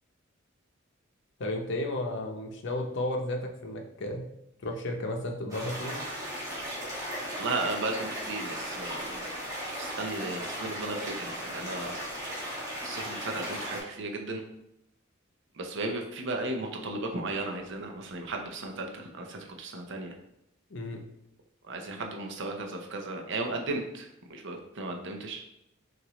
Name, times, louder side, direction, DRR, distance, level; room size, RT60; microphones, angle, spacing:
voice 1, 1.4-4.3 4.6-6.0 20.7-21.1, left 1 dB, 60° left, 3 dB, 0.6 m, -33 dB
sound 1, 5.5-13.8, equal, 15° right, 1.4 m, -36 dB
voice 2, 7.3-9.3 9.8-12.0 12.8-14.4 15.5-20.1 21.6-25.4, right 2 dB, 65° right, 3 dB, 0.6 m, -35 dB
5.8 x 2.5 x 3.0 m, 0.81 s
head